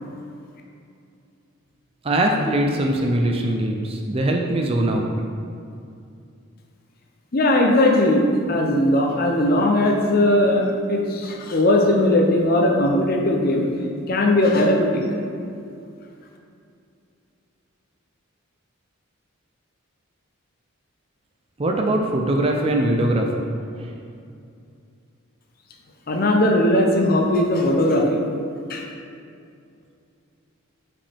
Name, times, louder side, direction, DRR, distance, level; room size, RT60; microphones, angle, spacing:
voice 1, 2.0-5.1 21.6-23.9, right 1 dB, 25° right, 2 dB, 0.4 m, -22 dB
voice 2, 7.3-13.7 14.1-15.0 26.1-28.2 28.7-28.9, left 1 dB, 45° left, 1 dB, 0.6 m, -19 dB
5.5 x 5.2 x 3.4 m, 2.5 s
head